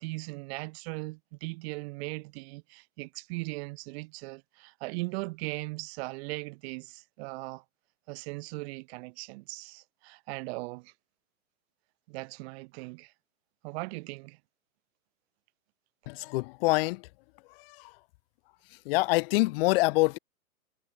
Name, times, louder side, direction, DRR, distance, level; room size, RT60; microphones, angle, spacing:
voice 1, 0.0-7.6 8.1-10.9 12.1-13.1 13.6-14.4, right 26 dB, 45° right, 7.3 m, -38 dB
voice 2, 16.1-17.0 17.7-17.9 18.8-20.2, left 23 dB, 40° left, 1.3 m, -26 dB
hypercardioid pair, 120°, 44 cm